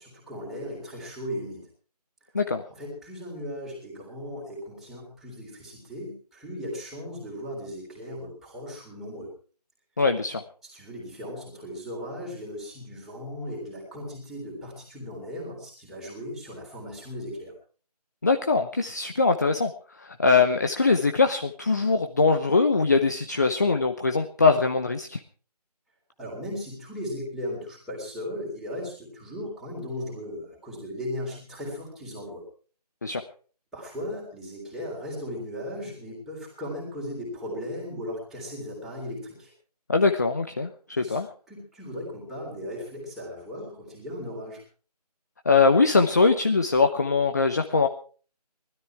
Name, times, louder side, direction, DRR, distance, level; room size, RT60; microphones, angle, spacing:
voice 1, 0.0-1.7 2.7-9.3 10.7-17.5 26.2-32.4 33.7-39.5 41.0-41.2 41.5-44.6, equal, ahead, -5 dB, 3.6 m, -37 dB
voice 2, 10.0-10.4 18.2-19.7 20.0-25.2 33.0-33.2 39.9-40.7 41.0-41.3 45.5-47.9, left 4 dB, 25° left, 6 dB, 0.8 m, -22 dB
20.0 x 13.0 x 4.7 m, 0.41 s
figure-of-eight pair, 165°, 21 cm